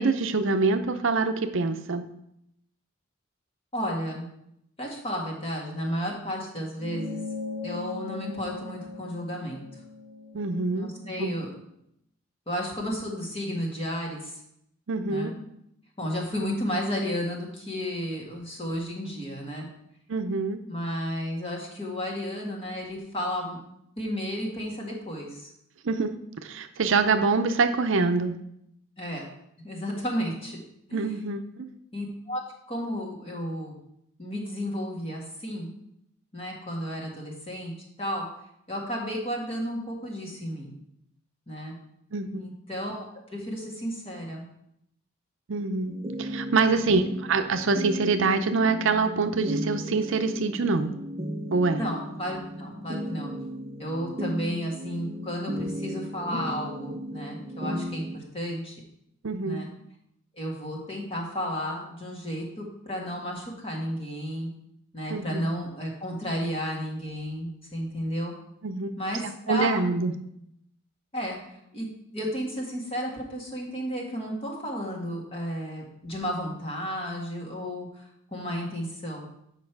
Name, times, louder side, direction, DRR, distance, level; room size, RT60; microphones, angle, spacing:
voice 1, 0.0-2.1 10.3-10.9 11.2-11.3 14.9-15.3 20.1-20.6 25.8-26.1 26.4-28.4 30.9-31.7 42.1-42.5 45.5-50.9 51.5-51.8 59.2-59.6 65.1-65.4 68.6-68.9 69.2-70.1, right 4 dB, 65° right, 7 dB, 0.6 m, -25 dB
voice 2, 3.7-4.3 4.8-7.2 7.6-9.6 10.7-11.5 12.5-14.3 15.1-15.3 16.0-19.7 20.7-23.6 24.0-25.5 29.0-29.3 29.6-30.6 30.9-31.1 31.9-32.4 32.7-33.8 34.2-35.7 36.3-37.7 38.0-38.3 38.7-40.8 41.5-41.7 42.3-44.4 46.8-46.9 51.8-53.3 53.8-58.8 59.4-59.7 60.3-64.5 64.9-68.3 69.0-69.8 71.1-71.4 71.7-71.9 72.1-78.0 78.3-79.3, equal, 30° left, -1 dB, 1.9 m, -32 dB
sound 1, 6.8-11.6, left 3 dB, 70° left, 3.4 m, -39 dB
sound 2, 45.9-58.2, equal, 30° right, 0.7 m, -35 dB
8.5 x 5.3 x 4.6 m, 0.77 s
head